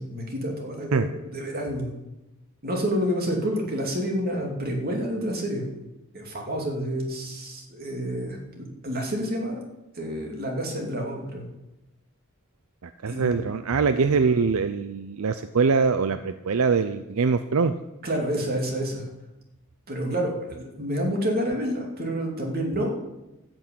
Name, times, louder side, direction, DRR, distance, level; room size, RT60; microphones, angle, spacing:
voice 1, 0.0-1.9 2.6-5.7 6.1-9.6 9.9-11.5 13.1-13.4 13.9-14.1 18.0-19.1 19.9-22.9, equal, 45° right, 1 dB, 2.8 m, -29 dB
voice 2, 12.8-17.7, right 5 dB, 75° right, 10 dB, 0.5 m, -23 dB
13.5 x 6.2 x 8.7 m, 0.98 s
head